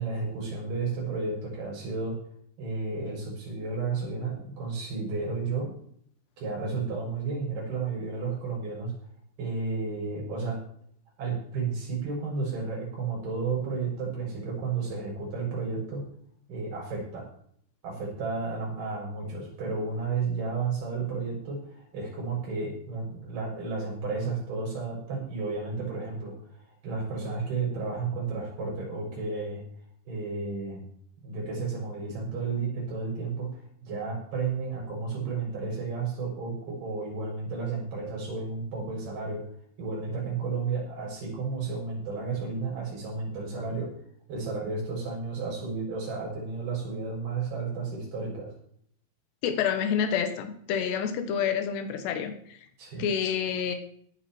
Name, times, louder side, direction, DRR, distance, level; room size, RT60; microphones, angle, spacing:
voice 1, 0.0-2.2 2.6-5.7 6.4-8.9 9.4-10.6 11.2-16.0 16.5-17.3 17.8-26.3 26.8-29.6 30.1-30.8 31.2-39.4 39.8-43.9 44.3-48.5 52.8-53.0, right 4 dB, 70° right, -3 dB, 8.3 m, -32 dB
voice 2, 49.4-52.6 53.0-53.8, left 8 dB, 85° left, 7 dB, 3.6 m, -28 dB
17.5 x 9.0 x 4.5 m, 0.64 s
omnidirectional pair, 4.7 m